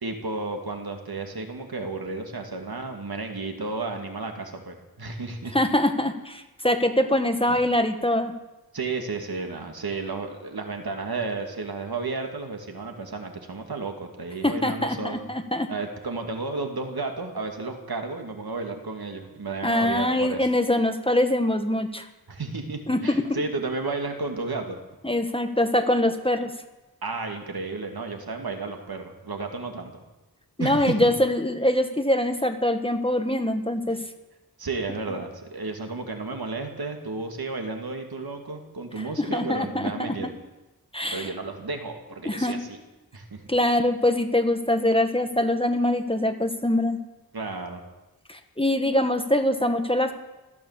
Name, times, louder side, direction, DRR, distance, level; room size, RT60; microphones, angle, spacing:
voice 1, 0.0-5.6 7.5-7.6 8.7-15.3 15.7-20.5 22.3-24.8 27.0-29.9 30.6-31.1 34.6-40.3 41.1-42.8 43.1-43.4 47.3-47.8, right 3 dB, 70° right, 4 dB, 2.4 m, -32 dB
voice 2, 5.5-8.3 14.4-15.7 19.6-22.1 22.9-23.4 25.0-26.5 30.6-34.0 39.0-40.1 40.9-41.3 42.2-42.6 43.5-47.0 48.3-50.1, left 1 dB, 15° left, 7 dB, 1.3 m, -23 dB
16.0 x 12.5 x 7.4 m, 1.1 s
wide cardioid pair, 85°, 38 cm